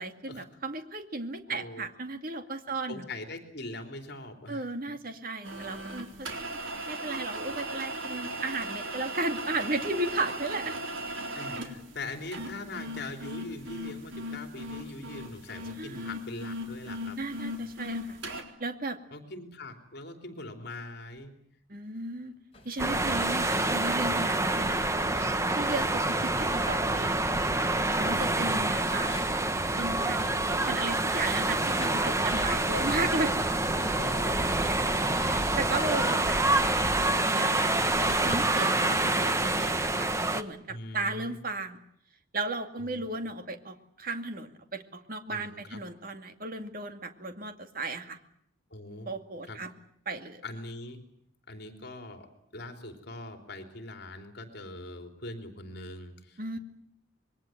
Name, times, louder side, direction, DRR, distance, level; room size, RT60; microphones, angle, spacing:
voice 1, 0.0-3.1 4.5-6.6 6.9-10.8 15.8-16.1 17.2-18.2 18.6-19.0 21.7-22.3 22.6-24.9 25.5-27.2 28.0-29.2 29.8-33.4 35.2-37.7 38.0-41.8 42.3-48.2 49.1-49.7 50.1-50.4 56.4-56.6, right 2 dB, 45° right, 7 dB, 2.4 m, -35 dB
voice 2, 1.5-1.9 2.9-4.7 6.2-6.3 11.3-17.5 19.1-21.3 28.2-29.0 33.9-34.7 35.0-36.0 40.7-41.4 42.8-43.1 45.3-45.8 48.7-49.1 49.5-49.6 50.4-51.0 51.5-52.3 52.5-56.6, left 2 dB, 55° left, 5 dB, 3.5 m, -42 dB
sound 1, 5.4-18.4, right 1 dB, 75° right, 4.0 m, -37 dB
sound 2, 22.3-22.8 23.5-24.3 24.6-24.8 25.2-25.6 27.6-28.1 28.5-30.7 31.0-31.3 31.6-32.6 33.5-33.8 34.1-34.2 35.2-35.5 36.4-36.8 38.0-38.5 39.5-40.3, left 3 dB, 30° left, 5.9 m, -49 dB
sound 3, 22.8-40.4, right 2 dB, 15° right, 1.1 m, -27 dB
26.5 x 22.0 x 9.1 m, 0.70 s
head